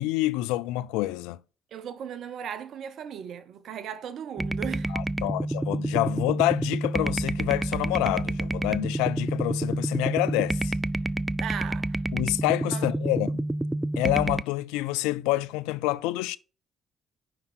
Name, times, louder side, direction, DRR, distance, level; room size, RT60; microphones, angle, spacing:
voice 1, 0.0-1.4 4.9-10.7 12.1-13.4 14.0-16.4, left 17 dB, 85° left, 0.3 m, -27 dB
voice 2, 1.7-4.9 5.2-5.3 11.4-12.0 12.7-12.9, right 8 dB, 65° right, 0.9 m, -37 dB
sound 1, 4.4-14.4, right 1 dB, 15° right, 0.4 m, -29 dB
5.8 x 5.4 x 6.2 m
hypercardioid pair, 50°, 0 cm